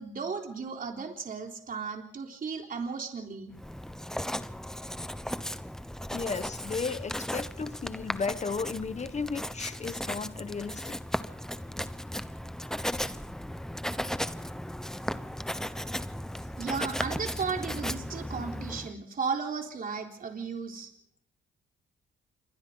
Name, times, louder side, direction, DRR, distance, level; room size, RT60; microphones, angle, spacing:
voice 1, 0.0-3.5 16.6-20.9, right 5 dB, 45° right, 3.8 m, -35 dB
Writing, 3.5-18.9, equal, 5° left, 0.9 m, -36 dB
voice 2, 6.1-11.0, left 5 dB, 35° left, 1.2 m, -34 dB
28.0 x 24.0 x 4.0 m
cardioid pair, 90°, 20 cm